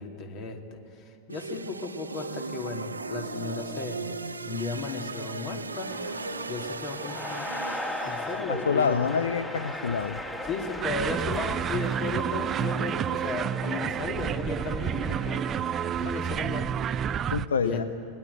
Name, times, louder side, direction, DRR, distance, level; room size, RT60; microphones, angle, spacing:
voice 1, 0.0-4.0 4.4-5.9 6.5-7.5 8.0-9.0 10.5-16.7 17.6-17.9, left 4 dB, 40° left, 4 dB, 2.6 m, -35 dB
sound 1, 1.3-8.4, right 3 dB, 80° right, 1.0 m, -37 dB
sound 2, 5.9-15.9, left 1 dB, 10° left, 2.2 m, -38 dB
voice 2, 8.5-10.2 17.3-17.8, left 6 dB, 70° left, 12 dB, 0.7 m, -26 dB
sound 3, 10.8-17.5, right 9 dB, 25° right, 0.6 m, -29 dB
29.5 x 20.5 x 7.9 m, 2.8 s
figure-of-eight pair, 90°, 0 cm